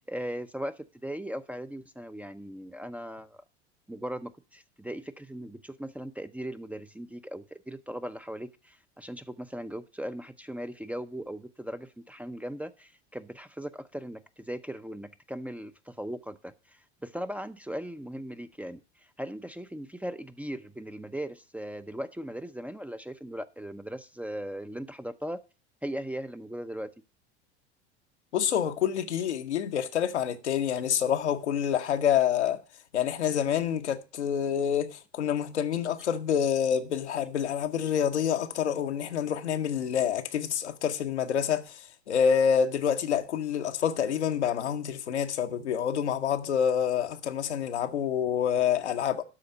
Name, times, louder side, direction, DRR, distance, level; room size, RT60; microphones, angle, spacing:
voice 1, 0.0-3.4 3.9-25.4 25.8-26.9, equal, 5° right, 0.6 m, -38 dB
voice 2, 28.3-32.6 32.9-49.2, left 8 dB, 80° left, 1.1 m, -27 dB
12.5 x 4.2 x 7.8 m
hypercardioid pair, 85°, 33 cm